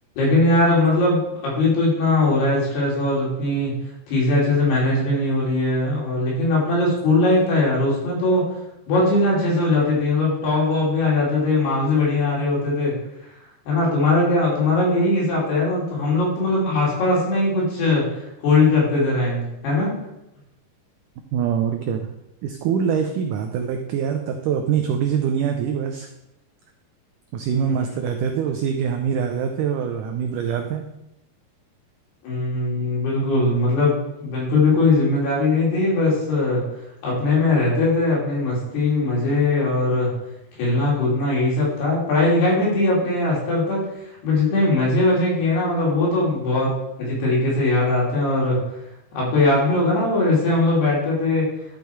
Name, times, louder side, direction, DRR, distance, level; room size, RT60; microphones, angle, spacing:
voice 1, 0.2-3.7 4.1-8.4 8.9-13.0 13.7-19.9 27.6-27.8 32.2-36.6 37.0-40.1 40.6-43.8 44.2-48.6 49.1-51.5, left 2 dB, 80° left, -5 dB, 5.4 m, -20 dB
voice 2, 21.3-22.1 22.4-26.1 27.3-30.9, right 7 dB, 90° right, 4 dB, 1.8 m, -24 dB
12.0 x 5.4 x 4.6 m, 0.87 s
omnidirectional pair, 4.6 m